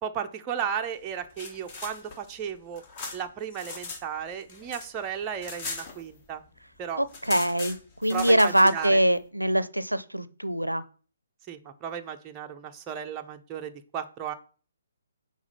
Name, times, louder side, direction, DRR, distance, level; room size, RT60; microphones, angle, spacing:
voice 1, 0.0-2.8 3.1-6.4 6.8-7.0 8.1-9.0 11.5-14.3, right 8 dB, 20° right, 5 dB, 0.5 m, -34 dB
sound 1, 1.1-4.0 4.3-6.5 6.8-6.9 7.1-8.9, left 4 dB, 25° left, 1.1 m, -39 dB
voice 2, 7.0-10.8, equal, 85° right, 16 dB, 0.5 m, -23 dB
4.9 x 3.8 x 5.4 m, 0.41 s
figure-of-eight pair, 135°, 0 cm